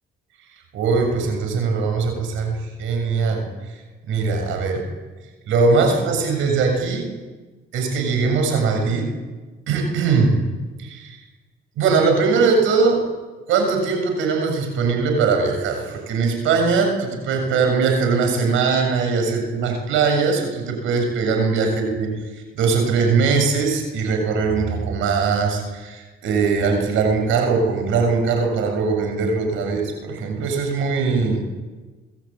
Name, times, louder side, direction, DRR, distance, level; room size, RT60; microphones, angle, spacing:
voice 1, 0.7-3.8 4.1-4.8 5.5-7.1 7.7-9.1 9.7-10.4 10.8-11.2 11.8-13.0 13.5-22.1 22.6-31.4, right 4 dB, 90° right, 4 dB, 7.2 m, -21 dB
27.0 x 21.0 x 9.0 m, 1.3 s
cardioid pair, 90°, 20 cm